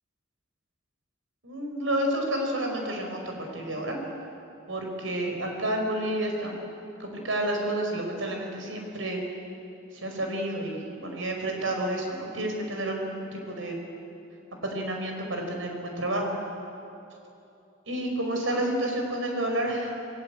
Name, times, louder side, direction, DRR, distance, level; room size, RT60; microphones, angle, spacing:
voice 1, 1.4-4.0 4.7-6.7 7.0-9.2 9.9-13.8 14.6-16.4 17.9-19.9, right 1 dB, 75° right, 2 dB, 5.2 m, -30 dB
27.0 x 23.0 x 8.5 m, 2.8 s
head